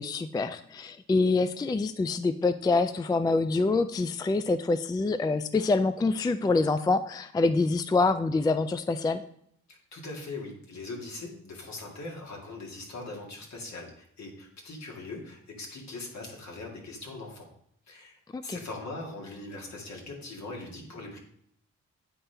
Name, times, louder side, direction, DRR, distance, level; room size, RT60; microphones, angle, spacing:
voice 1, 0.0-9.2 18.3-18.6, left 3 dB, 15° left, 11 dB, 0.3 m, -26 dB
voice 2, 9.7-17.5 17.9-18.2 18.4-21.2, left 2 dB, 60° left, 0 dB, 2.0 m, -41 dB
8.8 x 4.3 x 3.4 m, 0.71 s
supercardioid pair, 50°, 31 cm